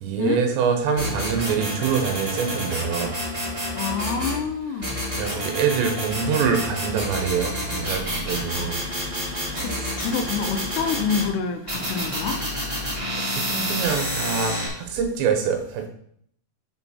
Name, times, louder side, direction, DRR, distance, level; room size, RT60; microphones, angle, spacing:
voice 1, 0.0-3.1 4.9-8.8 9.5-10.0 13.3-15.9, right 6 dB, 80° right, 4 dB, 3.3 m, -25 dB
sound 1, 1.0-4.4 4.8-11.3 11.7-14.7, equal, 25° right, 0.6 m, -29 dB
voice 2, 3.8-5.0 8.5-8.7 9.6-12.4, left 5 dB, 80° left, 6 dB, 2.7 m, -27 dB
9.7 x 4.4 x 4.3 m, 0.66 s
omnidirectional pair, 5.1 m